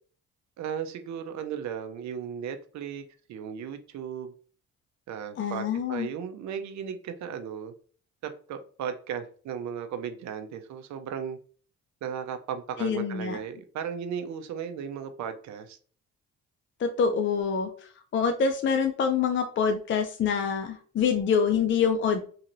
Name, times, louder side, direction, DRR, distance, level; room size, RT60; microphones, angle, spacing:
voice 1, 0.6-3.0 3.3-4.3 5.1-7.7 8.2-11.4 12.0-15.8, right 8 dB, 65° right, 8 dB, 0.6 m, -36 dB
voice 2, 5.4-6.1 12.8-13.4 16.8-17.7 18.1-22.2, left 6 dB, 40° left, 5 dB, 0.5 m, -25 dB
3.0 x 2.8 x 2.6 m, 0.43 s
cardioid pair, 90°, 30 cm